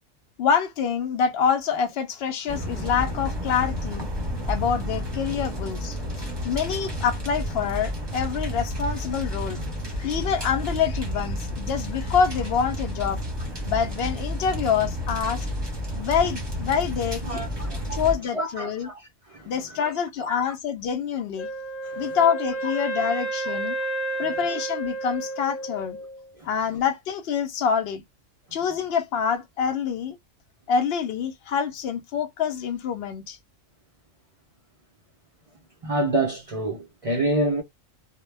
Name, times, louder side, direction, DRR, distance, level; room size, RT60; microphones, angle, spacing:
voice 1, 0.4-4.1 4.5-9.6 10.0-13.2 13.7-15.5 16.0-17.4 17.9-18.9 19.4-21.5 22.0-23.8 24.2-26.0 26.4-28.0 28.5-30.2 30.7-33.4, left 7 dB, 65° left, 0.7 m, -26 dB
sound 1, 2.5-18.1, equal, 25° right, 0.7 m, -31 dB
voice 2, 17.2-18.0 18.3-19.0 19.3-19.8 20.2-20.4 21.8-22.2 26.4-26.5 35.8-37.6, right 1 dB, 55° right, 0.4 m, -28 dB
Wind instrument woodwind instrument, 21.4-26.2, right 2 dB, 80° left, 1.0 m, -31 dB
2.1 x 2.1 x 3.2 m
omnidirectional pair, 1.3 m